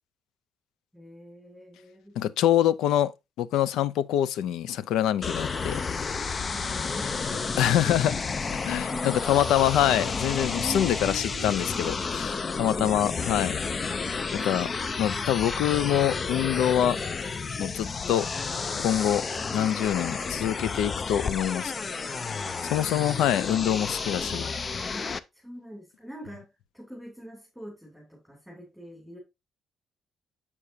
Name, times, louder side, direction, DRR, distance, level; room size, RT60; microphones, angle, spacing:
voice 1, 0.9-2.1 6.5-8.6 8.9-9.7 10.6-11.5 12.5-13.1 15.0-15.6 20.1-20.3 22.4-23.4 24.2-24.4 24.9-29.2, equal, 5° left, 3.0 m, -43 dB
voice 2, 2.2-3.1 3.4-5.8 7.6-8.1 8.7-13.6 14.3-14.7 15.0-17.0 17.6-18.3 18.8-19.2 19.5-21.7 22.7-24.5, left 11 dB, 90° left, 0.5 m, -25 dB
sound 1, 5.2-25.2, left 4 dB, 40° left, 0.5 m, -31 dB
7.2 x 6.6 x 2.7 m
cardioid pair, 90°, 0 cm